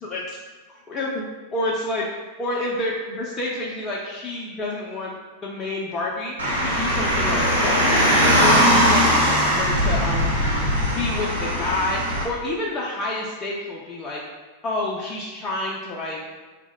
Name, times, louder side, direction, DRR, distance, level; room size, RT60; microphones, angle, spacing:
voice 1, 0.9-1.2 1.5-5.1 5.4-6.3 6.6-8.0 8.4-10.3 10.8-14.2 14.6-16.2, left 2 dB, 20° left, -4 dB, 0.5 m, -29 dB
Car, 6.4-12.2, equal, 75° right, 0.9 m, -20 dB
3.0 x 2.1 x 3.6 m, 1.4 s
figure-of-eight pair, 90°, 0 cm